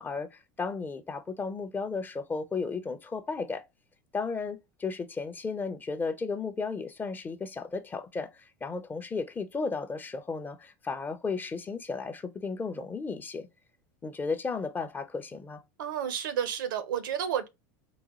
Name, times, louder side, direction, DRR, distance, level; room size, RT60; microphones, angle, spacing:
voice 1, 0.0-3.6 4.1-13.5 14.0-15.6, left 4 dB, 20° left, 0.4 m, -34 dB
voice 2, 15.8-17.5, right 9 dB, 90° right, 0.6 m, -31 dB
3.8 x 2.2 x 2.9 m
supercardioid pair, 110°, 11 cm